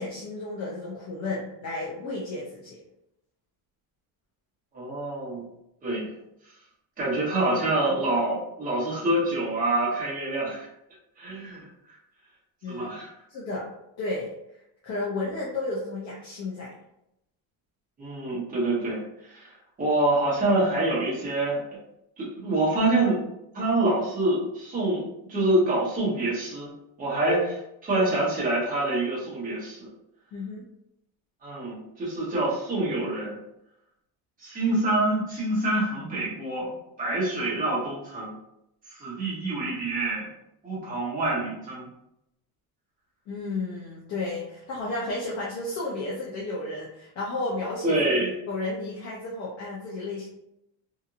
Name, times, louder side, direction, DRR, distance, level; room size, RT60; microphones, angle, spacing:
voice 1, 0.0-2.8 12.6-12.9 13.3-13.7 14.0-14.3 14.8-16.8 27.3-27.4 30.3-30.6 43.3-48.0 48.5-50.3, left 2 dB, 40° left, -5 dB, 0.6 m, -32 dB
voice 2, 4.7-5.5 5.8-6.1 7.0-10.7 11.2-11.7 12.7-13.1 18.0-19.5 19.8-21.6 22.2-23.2 23.5-25.0 25.3-26.7 27.0-27.4 27.8-29.9 31.4-33.4 34.4-38.3 38.9-40.3 40.6-41.9 47.8-48.3, right 2 dB, 20° right, -7 dB, 1.0 m, -26 dB
2.8 x 2.6 x 2.5 m, 0.81 s
cardioid pair, 180°, 41 cm